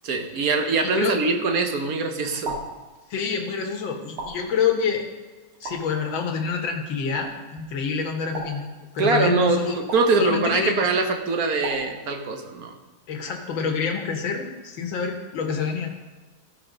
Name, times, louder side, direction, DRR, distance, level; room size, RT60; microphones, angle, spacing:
voice 1, 0.0-2.6 9.0-12.7, right 3 dB, 50° right, 5 dB, 1.3 m, -23 dB
sound 1, 2.5-2.9 4.2-4.6 5.7-6.0 7.1-7.4 8.3-8.8 9.9-10.2 11.6-12.0, right 1 dB, 85° right, 2.8 m, -35 dB
voice 2, 3.1-5.0 5.6-8.7 8.9-9.8 10.2-10.7 13.1-16.1, left 6 dB, 70° left, 2 dB, 2.1 m, -27 dB
15.0 x 5.8 x 5.2 m, 1.3 s
omnidirectional pair, 2.2 m